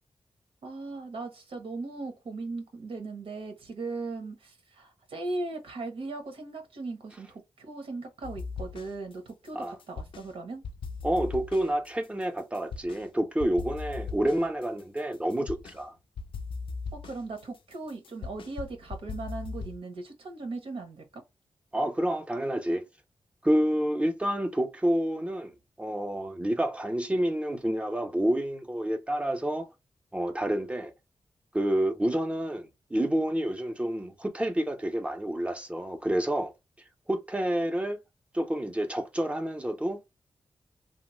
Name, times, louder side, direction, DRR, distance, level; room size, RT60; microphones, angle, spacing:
voice 1, 0.6-10.6 16.9-21.2, right 3 dB, 85° right, 0.9 m, -38 dB
sound 1, 8.2-9.1 9.4-10.3 10.6-13.0 13.4-15.8 16.2-19.8, left 4 dB, 70° left, 0.4 m, -39 dB
voice 2, 11.0-15.9 21.7-22.9 23.4-29.7 30.1-30.9 31.5-36.5 37.1-38.0 38.3-40.1, right 1 dB, 15° right, 0.6 m, -29 dB
2.9 x 2.0 x 3.0 m
cardioid pair, 80°, 9 cm